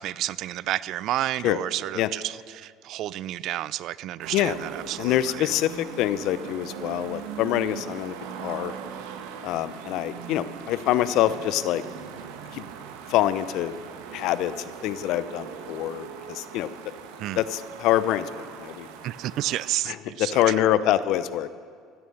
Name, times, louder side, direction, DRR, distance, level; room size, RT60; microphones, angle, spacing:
voice 1, 0.0-5.5 17.2-17.4 19.0-20.7, right 14 dB, 60° right, 20 dB, 0.4 m, -31 dB
sound 1, 4.2-19.7, right 7 dB, 80° right, 1.4 m, -40 dB
voice 2, 5.0-8.7 9.4-11.8 12.5-12.6 13.1-13.7 14.1-16.7 17.4-18.9 19.9-21.5, left 13 dB, 65° left, 15 dB, 0.7 m, -25 dB
16.0 x 13.0 x 6.5 m, 2.1 s
supercardioid pair, 90°, 0 cm